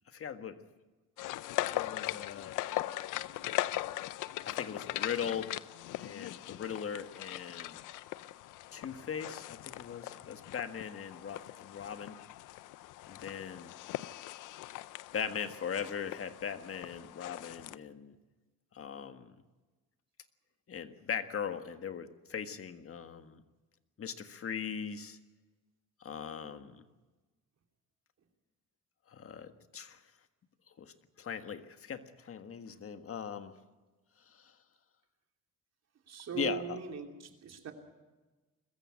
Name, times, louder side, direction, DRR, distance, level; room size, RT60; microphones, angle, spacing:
voice 1, 0.1-0.6 1.7-2.6 4.4-5.6 6.0-7.8 8.7-12.2 13.0-13.7 15.1-18.2 18.7-19.3 20.7-23.4 24.0-25.2 26.0-26.8 29.1-30.0 30.8-33.6 34.2-34.6 36.3-36.8, left 7 dB, 45° left, 9 dB, 1.6 m, -40 dB
sound 1, 1.2-17.8, left 15 dB, 90° left, 0.6 m, -40 dB
voice 2, 36.1-37.7, right 7 dB, 60° right, 3 dB, 3.0 m, -40 dB
21.5 x 14.5 x 9.6 m, 1.2 s
cardioid pair, 90°, 30 cm